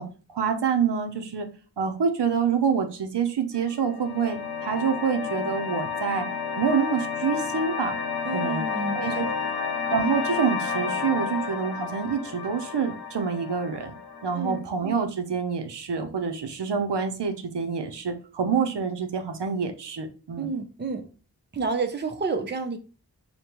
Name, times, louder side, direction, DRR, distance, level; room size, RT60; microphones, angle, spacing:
voice 1, 0.0-1.5 1.8-6.3 6.6-7.9 8.3-8.7 8.9-9.2 9.9-14.0 14.2-20.5, right 6 dB, 80° right, 0.6 m, -27 dB
sound 1, 3.5-14.6, left 6 dB, 65° left, 0.6 m, -31 dB
voice 2, 8.2-9.3 14.3-14.6 20.4-21.1 21.5-22.8, right 4 dB, 25° right, 0.5 m, -30 dB
5.1 x 2.2 x 2.9 m
wide cardioid pair, 50°, 41 cm